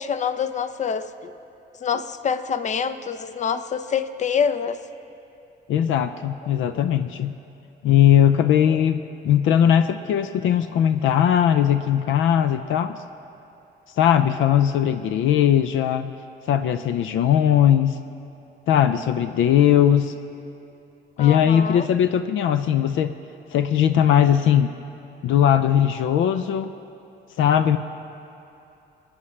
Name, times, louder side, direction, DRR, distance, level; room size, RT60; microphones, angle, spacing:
voice 1, 0.0-1.3 1.8-4.8 8.7-8.8 21.2-21.9, left 7 dB, 35° left, 11 dB, 0.6 m, -26 dB
voice 2, 5.7-7.3 7.8-13.0 14.0-16.1 16.5-18.0 18.7-20.1 21.2-23.1 23.5-24.7 25.2-26.7 27.4-27.8, left 9 dB, 80° left, 10 dB, 0.5 m, -19 dB
28.0 x 9.6 x 3.2 m, 2.8 s
cardioid pair, 90°, 20 cm